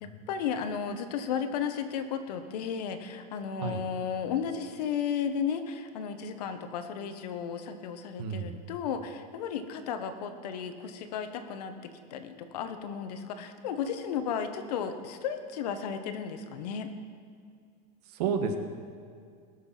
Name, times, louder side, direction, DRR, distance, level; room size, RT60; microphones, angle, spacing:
voice 1, 0.0-16.9, left 7 dB, 85° left, 9 dB, 1.2 m, -34 dB
voice 2, 8.2-8.5 18.1-18.6, right 6 dB, 80° right, 7 dB, 1.5 m, -30 dB
20.5 x 6.8 x 5.8 m, 2.2 s
supercardioid pair, 175°, 20 cm